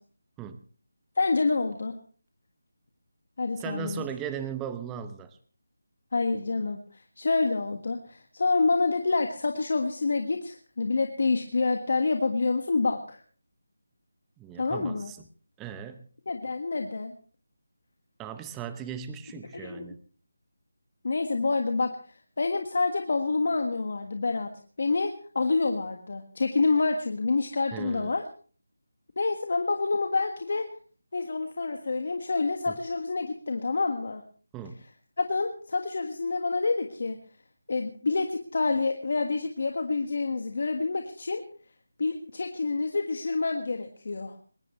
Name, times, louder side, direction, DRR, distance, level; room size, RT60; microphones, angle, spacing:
voice 1, 1.2-2.0 3.4-4.0 6.1-6.8 7.2-13.2 14.6-15.1 16.3-17.1 19.5-19.9 21.0-24.5 24.8-28.2 29.2-30.7 31.1-34.2 35.2-37.2 37.7-41.4 42.0-44.4, left 3 dB, 55° left, 5 dB, 1.6 m, -27 dB
voice 2, 3.6-5.4 14.4-15.3 15.6-16.1 18.2-20.0 27.7-28.1 32.7-32.8 34.5-34.8, right 8 dB, 10° right, 11 dB, 0.8 m, -37 dB
20.0 x 19.5 x 3.2 m, 0.42 s
figure-of-eight pair, 165°, 0 cm